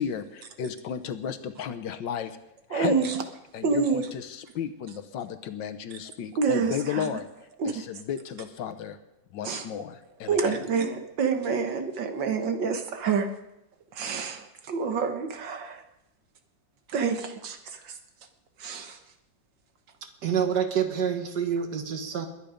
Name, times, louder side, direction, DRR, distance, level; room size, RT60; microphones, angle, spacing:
voice 1, 0.0-2.4 2.7-3.1 3.5-4.3 4.5-7.2 7.6-9.0 9.3-10.5, left 8 dB, 80° left, 9 dB, 1.6 m, -33 dB
voice 2, 2.7-3.2 3.6-4.1 6.3-7.2 7.6-7.8 9.4-9.7 10.3-13.3 13.9-15.8 16.9-18.0 18.6-19.0, right 5 dB, 80° right, 7 dB, 2.0 m, -28 dB
voice 3, 20.2-22.3, right 7 dB, 65° right, 6 dB, 2.0 m, -27 dB
21.0 x 9.3 x 5.2 m, 0.88 s
omnidirectional pair, 2.0 m